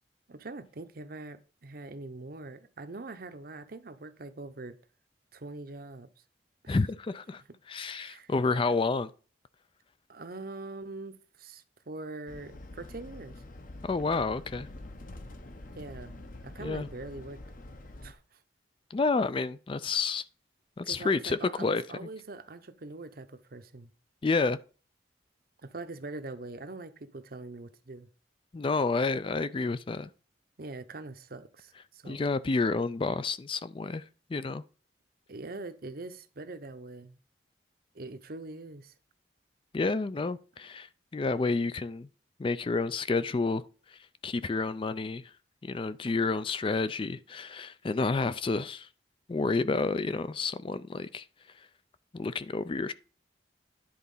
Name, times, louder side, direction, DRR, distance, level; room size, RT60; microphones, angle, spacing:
voice 1, 0.3-4.8 5.3-6.1 6.6-6.8 7.9-8.6 10.1-13.4 15.7-17.4 18.0-18.4 20.8-23.9 25.6-28.1 30.6-32.2 35.3-37.2 37.9-38.9, right 2 dB, 55° right, 0.8 m, -43 dB
voice 2, 6.7-7.4 7.7-9.1 13.8-14.7 16.6-16.9 18.9-20.2 20.8-21.8 24.2-24.6 28.5-30.1 32.0-34.0 34.3-34.6 39.7-42.1 42.4-43.6 43.9-45.3 45.6-48.9 49.3-51.3 51.6-51.7 52.1-52.9, left 3 dB, 30° left, 0.4 m, -30 dB
sound 1, 12.3-18.1, left 2 dB, 45° left, 0.9 m, -46 dB
10.5 x 4.1 x 5.5 m
head